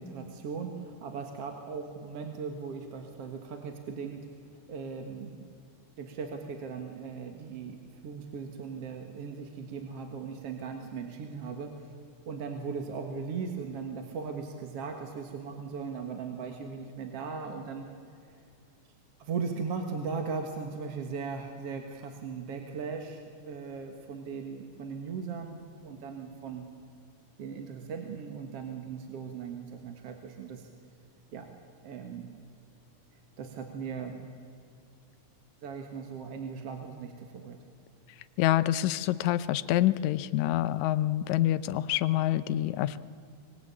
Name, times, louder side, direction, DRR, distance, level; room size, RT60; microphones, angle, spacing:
voice 1, 0.0-4.3 4.7-5.5 6.0-11.9 12.3-17.9 18.3-18.4 19.2-26.6 27.4-30.7 31.3-31.5 31.8-32.3 33.4-34.2 35.6-37.6, right 5 dB, 55° right, 5 dB, 2.6 m, -38 dB
voice 2, 38.4-43.0, left 14 dB, 80° left, 14 dB, 2.0 m, -26 dB
25.0 x 21.5 x 8.5 m, 2.4 s
omnidirectional pair, 3.4 m